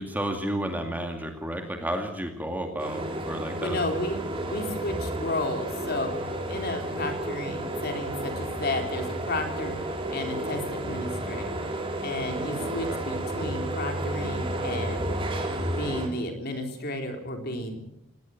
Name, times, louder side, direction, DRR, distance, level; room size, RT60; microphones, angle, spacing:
voice 1, 0.0-3.8 12.4-13.0, right 1 dB, 10° right, 4 dB, 2.2 m, -32 dB
sound 1, 2.8-16.1, right 1 dB, 25° right, 3.2 m, -32 dB
voice 2, 3.6-6.1 6.5-15.1 15.7-17.8, left 1 dB, 45° left, 4 dB, 3.4 m, -33 dB
18.5 x 18.5 x 7.6 m, 0.82 s
head